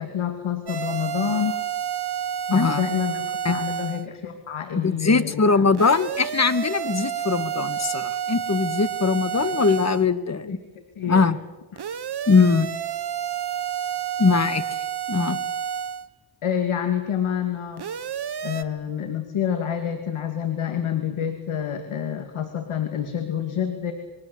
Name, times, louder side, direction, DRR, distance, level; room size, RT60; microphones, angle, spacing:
voice 1, 0.0-1.6 2.5-5.6 9.5-9.6 10.5-10.6 11.0-11.3 11.7-11.8 16.4-17.9 18.4-23.9, left 9 dB, 75° left, 7 dB, 2.6 m, -28 dB
sound 1, 0.7-4.1 5.7-10.1 11.8-16.1 17.8-18.6, right 9 dB, 50° right, 1.3 m, -30 dB
voice 2, 4.7-10.6 11.1-11.4 12.3-12.7 14.2-14.6 15.1-15.4, left 4 dB, 30° left, 14 dB, 1.6 m, -21 dB
27.0 x 22.5 x 8.1 m, 1.1 s
cardioid pair, 85°, 49 cm